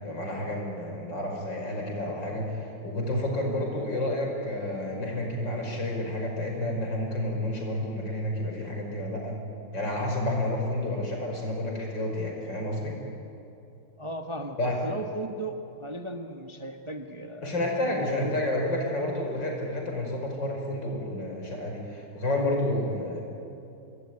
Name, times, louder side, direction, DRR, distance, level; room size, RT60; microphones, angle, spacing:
voice 1, 0.0-9.4 9.7-13.0 14.6-14.8 17.4-23.2, left 1 dB, 90° left, 1 dB, 6.0 m, -30 dB
voice 2, 14.0-17.5 17.9-18.8, right 1 dB, 20° right, 4 dB, 1.1 m, -37 dB
28.0 x 21.0 x 9.7 m, 2.7 s
omnidirectional pair, 1.9 m